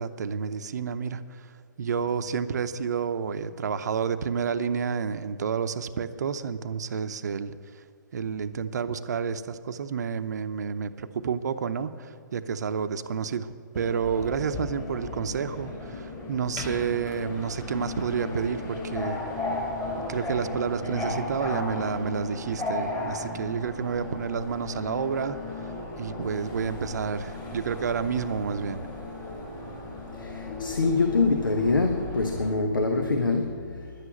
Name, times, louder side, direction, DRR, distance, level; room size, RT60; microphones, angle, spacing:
voice 1, 0.0-1.5 1.8-7.6 8.1-19.2 20.1-25.7 26.0-28.8, right 6 dB, 60° right, 0.7 m, -30 dB
Subway metro underground, 13.7-32.5, left 2 dB, 20° left, 3.3 m, -35 dB
voice 2, 30.1-33.9, left 3 dB, 85° left, 1.1 m, -25 dB
10.5 x 8.3 x 9.4 m
figure-of-eight pair, 135°, 11 cm